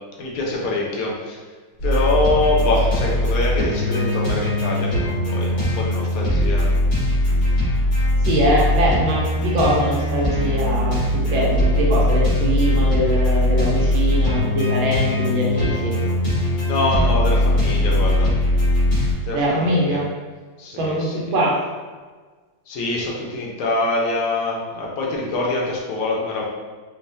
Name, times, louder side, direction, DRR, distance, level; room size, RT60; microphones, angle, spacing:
voice 1, 0.2-1.5 1.8-6.7 16.6-18.3 19.2-20.0 20.6-21.3 22.7-26.5, left 2 dB, 80° left, -2 dB, 1.6 m, -24 dB
sound 1, 1.8-19.1, left 1 dB, 60° left, 2.4 m, -20 dB
voice 2, 8.2-16.0 19.3-20.1 20.8-21.6, equal, 70° right, -3 dB, 1.5 m, -22 dB
5.3 x 2.4 x 2.6 m, 1.4 s
omnidirectional pair, 2.4 m